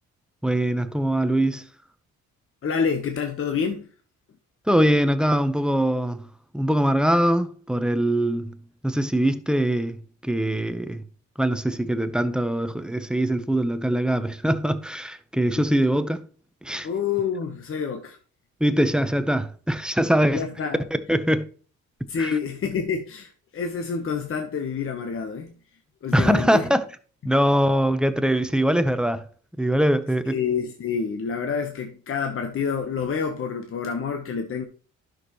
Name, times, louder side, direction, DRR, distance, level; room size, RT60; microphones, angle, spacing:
voice 1, 0.4-1.7 4.7-6.3 6.5-8.6 8.8-11.0 11.4-16.2 16.6-16.9 18.6-20.4 21.1-21.5 22.2-22.3 26.1-26.8 27.2-29.3 29.6-30.4, right 1 dB, 5° right, 0.7 m, -22 dB
voice 2, 2.6-3.9 15.6-15.7 16.8-18.2 20.3-20.8 22.1-25.6 26.0-26.7 30.3-34.6, left 6 dB, 45° left, 1.0 m, -28 dB
11.0 x 6.3 x 3.0 m
cardioid pair, 90°, 30 cm